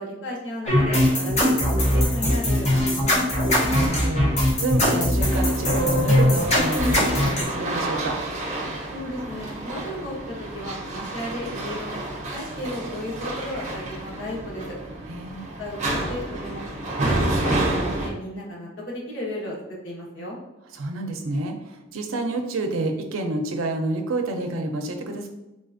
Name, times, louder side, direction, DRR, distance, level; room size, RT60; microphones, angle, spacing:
voice 1, 0.0-3.3 8.9-12.0 12.3-14.8 15.6-16.6 17.0-19.6 19.8-20.4, left 1 dB, 65° left, -4 dB, 1.1 m, -34 dB
sound 1, 0.7-7.4, left 1 dB, 35° left, 0.7 m, -21 dB
voice 2, 3.7-8.2 15.1-15.5 20.7-25.3, right 2 dB, 90° right, 4 dB, 0.5 m, -29 dB
sound 2, 4.2-18.1, right 1 dB, 35° right, 0.6 m, -30 dB
3.8 x 2.4 x 2.5 m, 0.94 s
head